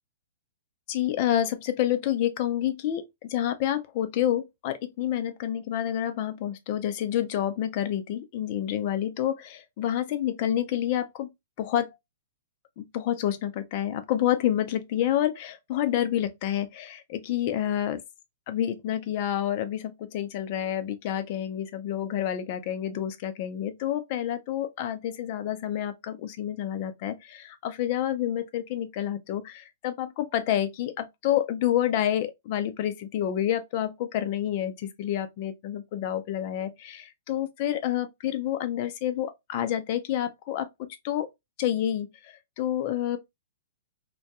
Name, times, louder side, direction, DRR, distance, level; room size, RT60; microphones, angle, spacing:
voice 1, 0.9-11.3 11.6-12.0 12.8-18.0 18.5-41.3 41.6-43.2, left 11 dB, 45° left, 0.5 m, -28 dB
2.2 x 2.2 x 2.7 m
hypercardioid pair, 125°, 0 cm